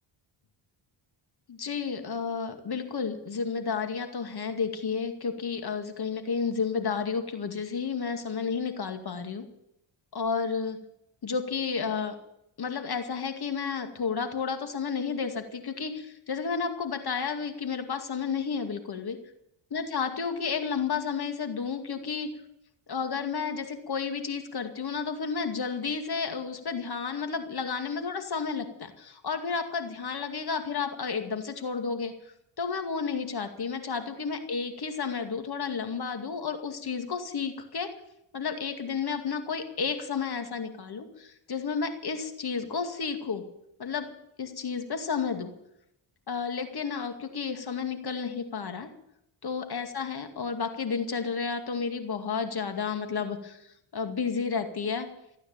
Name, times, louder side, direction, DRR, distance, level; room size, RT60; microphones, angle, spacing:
voice 1, 1.5-9.4 10.1-10.8 11.2-12.2 12.6-19.2 19.7-22.3 22.9-32.1 32.6-37.9 38.3-43.4 43.8-44.1 44.4-45.5 46.3-48.9 49.4-53.6 53.9-55.1, left 5 dB, 50° left, 6 dB, 2.3 m, -31 dB
15.5 x 9.4 x 8.8 m, 0.78 s
cardioid pair, 85°, 50 cm